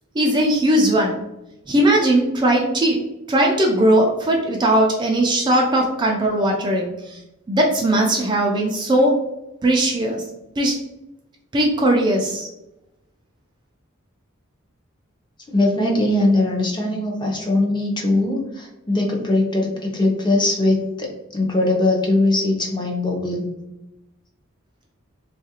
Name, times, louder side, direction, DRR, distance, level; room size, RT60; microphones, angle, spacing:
voice 1, 0.1-1.2 1.7-3.0 3.3-7.2 7.5-9.1 9.6-10.2 10.6-10.7 11.5-12.5, right 1 dB, 20° right, 1 dB, 0.3 m, -18 dB
voice 2, 15.5-23.5, left 2 dB, 20° left, 0 dB, 0.6 m, -20 dB
3.7 x 2.4 x 2.8 m, 0.92 s
head